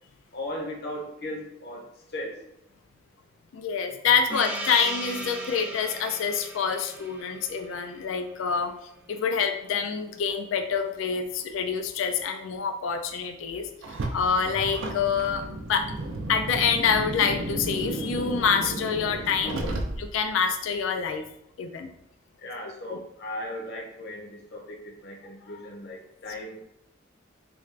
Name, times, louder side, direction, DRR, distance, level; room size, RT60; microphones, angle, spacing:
voice 1, 0.3-1.8 2.1-2.5 19.4-19.8 22.4-26.6, left 1 dB, 55° left, 1 dB, 0.7 m, -37 dB
voice 2, 3.5-8.7 9.1-13.7 14.1-15.9 16.3-19.6 20.0-21.3 21.6-21.9 22.9-23.0, left 6 dB, 80° left, 6 dB, 0.3 m, -26 dB
Gong, 4.3-9.4, right 1 dB, 5° right, 0.4 m, -39 dB
Car, 13.8-20.3, right 2 dB, 80° right, 0.5 m, -33 dB
3.4 x 2.4 x 3.2 m, 0.78 s
head